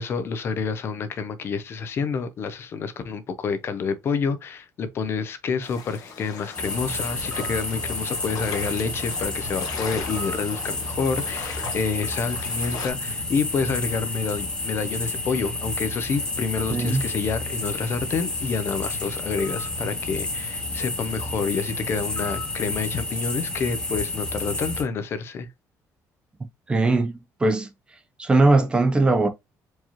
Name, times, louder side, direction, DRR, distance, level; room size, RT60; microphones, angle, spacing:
voice 1, 0.0-25.5, left 5 dB, 40° left, 0.5 m, -28 dB
sound 1, 5.6-12.9, left 5 dB, 70° left, 1.2 m, -38 dB
sound 2, 6.5-24.8, left 2 dB, 15° left, 1.1 m, -30 dB
voice 2, 16.7-17.0 26.7-27.7 28.2-29.3, right 2 dB, 15° right, 0.4 m, -20 dB
4.5 x 2.9 x 2.8 m
cardioid pair, 170°, 6 cm